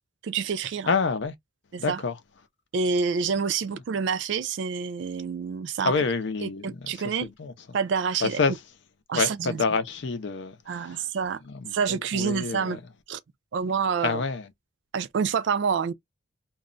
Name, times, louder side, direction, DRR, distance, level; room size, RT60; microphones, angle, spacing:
voice 1, 0.2-0.9 1.7-2.0 2.7-5.9 6.4-7.3 7.7-8.4 9.1-9.6 10.7-11.4 11.7-12.8 13.1-13.2 13.5-14.2 14.9-15.9, right 6 dB, 60° right, 0.3 m, -27 dB
voice 2, 0.9-1.3 1.8-2.1 5.8-6.7 7.2-7.5 8.2-8.5 9.1-11.0 11.5-12.8 14.0-14.5, left 4 dB, 55° left, 0.5 m, -27 dB
2.2 x 2.0 x 3.7 m
head